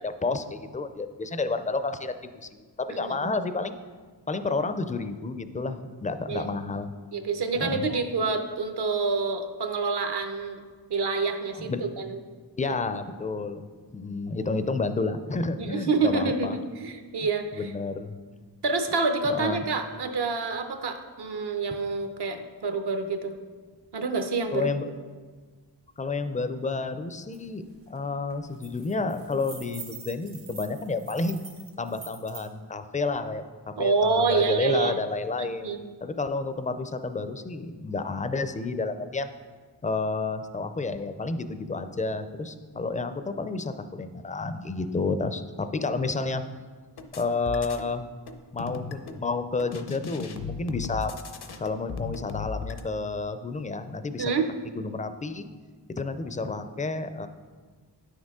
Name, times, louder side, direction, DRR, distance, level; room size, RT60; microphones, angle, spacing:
voice 1, 0.0-3.8 4.3-6.9 7.5-8.0 11.5-11.8 12.6-16.6 17.5-18.1 19.2-19.6 24.5-24.9 26.0-31.4 31.8-33.4 33.8-35.7 36.0-39.3 39.8-46.4 47.2-48.1 48.5-51.1 51.6-54.3 54.7-55.5 55.9-57.3, left 3 dB, 20° left, 10 dB, 0.4 m, -30 dB
voice 2, 7.1-10.6 10.9-12.2 12.7-12.8 15.6-17.5 18.6-23.4 23.9-24.7 33.8-35.0 35.6-35.8 54.2-54.5, right 4 dB, 70° right, 7 dB, 0.8 m, -27 dB
sound 1, 27.3-27.4 27.7-28.0 28.3-32.5, right 6 dB, 90° right, 1.5 m, -45 dB
sound 2, 47.0-47.9 48.3-49.2 49.6-52.8, left 5 dB, 65° left, 0.7 m, -37 dB
9.3 x 6.5 x 3.6 m, 1.5 s
wide cardioid pair, 100°, 42 cm